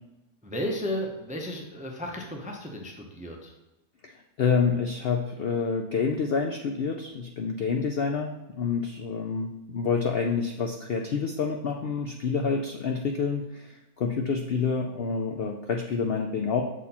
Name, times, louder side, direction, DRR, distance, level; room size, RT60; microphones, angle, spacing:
voice 1, 0.4-3.5, equal, 10° right, 1 dB, 0.4 m, -34 dB
voice 2, 4.0-16.6, left 5 dB, 65° left, 3 dB, 0.6 m, -28 dB
7.1 x 4.3 x 4.2 m, 0.99 s
omnidirectional pair, 1.6 m